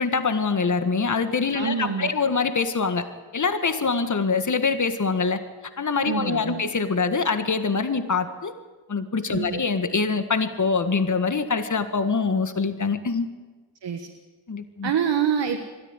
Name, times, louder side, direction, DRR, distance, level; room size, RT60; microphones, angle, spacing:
voice 1, 0.0-3.1 3.3-5.4 5.8-8.5 8.9-13.3 14.5-14.9, left 4 dB, 45° left, 9 dB, 1.8 m, -24 dB
voice 2, 1.5-2.1 6.0-6.6 9.3-9.6 13.8-14.1 14.8-15.6, right 7 dB, 80° right, 4 dB, 1.6 m, -26 dB
22.0 x 13.0 x 9.8 m, 1.3 s
cardioid pair, 60°, 42 cm